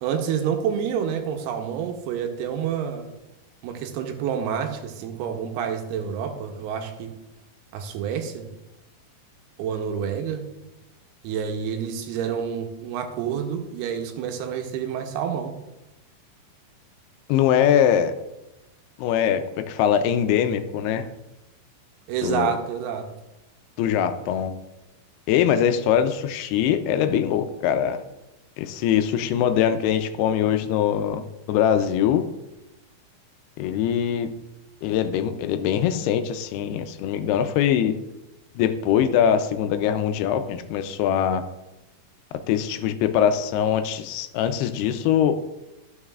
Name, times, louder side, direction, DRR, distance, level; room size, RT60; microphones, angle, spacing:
voice 1, 0.0-3.1 3.6-7.1 7.7-8.5 9.6-10.4 11.2-15.6 22.1-23.1, right 8 dB, 85° right, 5 dB, 2.7 m, -28 dB
voice 2, 17.3-18.1 19.0-21.1 22.2-22.6 23.8-24.5 25.3-28.0 28.6-31.2 31.5-32.3 33.6-34.3 34.8-38.0 38.6-41.4 42.5-45.3, left 9 dB, 90° left, 9 dB, 2.6 m, -22 dB
13.0 x 6.2 x 2.4 m, 0.99 s
omnidirectional pair, 4.5 m